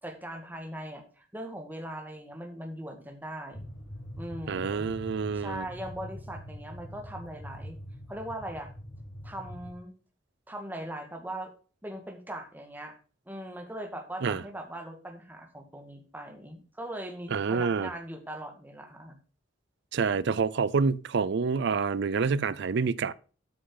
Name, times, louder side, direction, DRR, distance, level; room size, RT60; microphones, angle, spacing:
voice 1, 0.0-3.7 4.1-4.9 5.3-7.8 8.1-8.7 9.2-9.9 10.5-11.5 11.8-12.9 13.2-19.2, right 1 dB, 10° right, 1.7 m, -40 dB
sound 1, 3.5-9.7, equal, 75° left, 4.9 m, -44 dB
voice 2, 4.5-5.7 14.2-14.4 17.3-17.9 19.9-23.1, right 5 dB, 65° right, 0.5 m, -27 dB
13.0 x 6.4 x 3.9 m
head